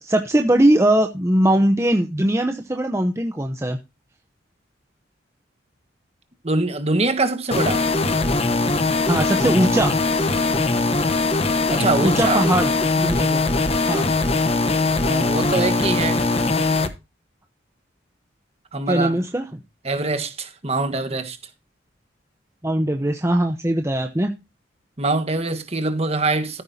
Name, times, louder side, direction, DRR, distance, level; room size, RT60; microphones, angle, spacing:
voice 1, 0.0-3.8 9.1-9.9 12.0-12.7 13.0-13.4 13.9-14.1 18.9-19.4 22.6-24.3, right 1 dB, 15° right, 0.8 m, -20 dB
voice 2, 6.4-7.9 11.7-12.4 15.0-16.2 18.7-19.2 19.8-21.4 25.0-26.6, right 3 dB, 35° right, 1.5 m, -23 dB
sound 1, 7.5-16.9, left 3 dB, 30° left, 1.0 m, -21 dB
14.0 x 9.2 x 2.7 m
head